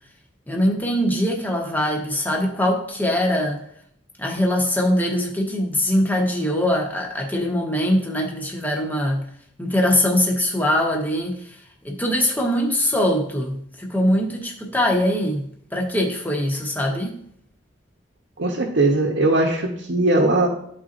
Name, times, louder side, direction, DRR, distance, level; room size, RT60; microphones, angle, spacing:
voice 1, 0.5-3.6 4.2-9.3 9.6-11.6 11.8-17.2, left 1 dB, 10° left, -1 dB, 1.1 m, -22 dB
voice 2, 18.4-20.5, right 2 dB, 70° right, -2 dB, 1.0 m, -19 dB
12.5 x 4.2 x 2.6 m, 0.68 s
head